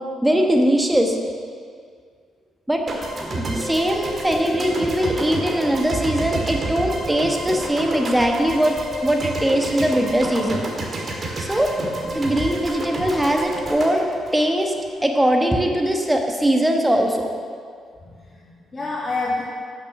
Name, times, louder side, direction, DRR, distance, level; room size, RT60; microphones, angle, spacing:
voice 1, 0.2-1.2 2.7-2.9 3.1-10.6 11.4-11.7 12.1-14.1 14.3-14.7 15.0-17.3, equal, 10° right, 2 dB, 1.2 m, -20 dB
sound 1, 2.9-15.1, right 2 dB, 40° right, 2.0 m, -30 dB
voice 2, 11.7-12.2 18.0-19.4, left 3 dB, 35° left, -5 dB, 1.5 m, -29 dB
8.3 x 6.1 x 6.4 m, 2.1 s
cardioid pair, 90°, 0 cm